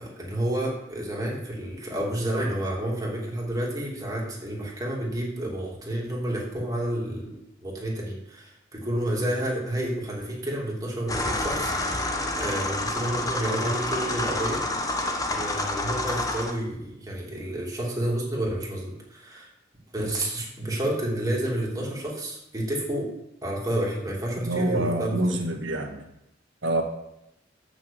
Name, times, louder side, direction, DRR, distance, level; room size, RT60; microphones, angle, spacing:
voice 1, 0.0-12.1 12.4-14.6 15.3-19.5 19.9-23.1 23.4-25.2, right 1 dB, 20° right, -3 dB, 2.7 m, -30 dB
sound 1, 11.1-16.5, left 2 dB, 20° left, 1.0 m, -28 dB
voice 2, 24.4-26.0 26.6-26.8, right 1 dB, 75° right, 3 dB, 1.6 m, -26 dB
7.6 x 5.9 x 7.3 m, 0.85 s
head